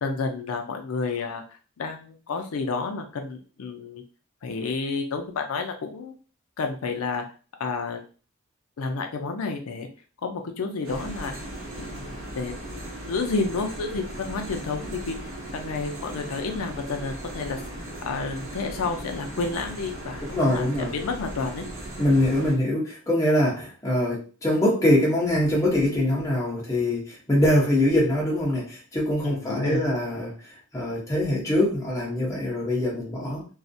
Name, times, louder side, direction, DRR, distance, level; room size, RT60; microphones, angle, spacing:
voice 1, 0.0-4.0 4.4-6.1 6.6-7.2 7.6-8.1 8.8-9.9 10.2-11.3 11.8-15.2 15.5-17.6 18.1-20.7 20.9-21.6 29.2-29.8, left 4 dB, 90° left, 0.4 m, -30 dB
sound 1, 10.8-22.6, right 1 dB, 65° right, 0.8 m, -37 dB
voice 2, 20.3-20.9 22.0-30.3 30.7-33.5, left 1 dB, 15° left, 0.8 m, -23 dB
2.3 x 2.0 x 2.6 m
head